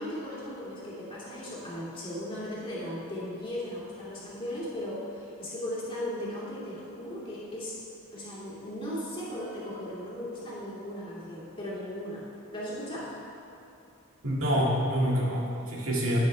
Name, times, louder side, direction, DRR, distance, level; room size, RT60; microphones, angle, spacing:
voice 1, 0.0-7.7 8.1-12.2 12.5-13.1, left 1 dB, 25° left, -7 dB, 2.4 m, -37 dB
voice 2, 14.2-16.2, equal, 75° right, -4 dB, 1.9 m, -27 dB
11.5 x 9.3 x 3.3 m, 2.8 s
head